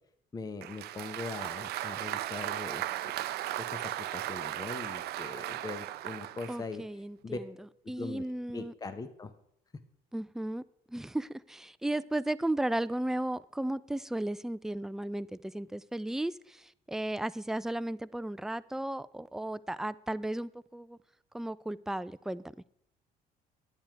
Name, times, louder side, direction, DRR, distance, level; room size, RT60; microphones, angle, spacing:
voice 1, 0.3-2.9 3.6-6.8 7.2-7.4 8.0-9.3, left 3 dB, 20° left, 0.8 m, -41 dB
Applause, 0.6-6.6, right 14 dB, 70° right, 0.5 m, -36 dB
voice 2, 6.5-7.5 7.9-8.7 10.1-21.0 21.3-22.4, right 1 dB, 5° right, 0.3 m, -35 dB
10.5 x 9.1 x 4.5 m
cardioid pair, 110°, 17 cm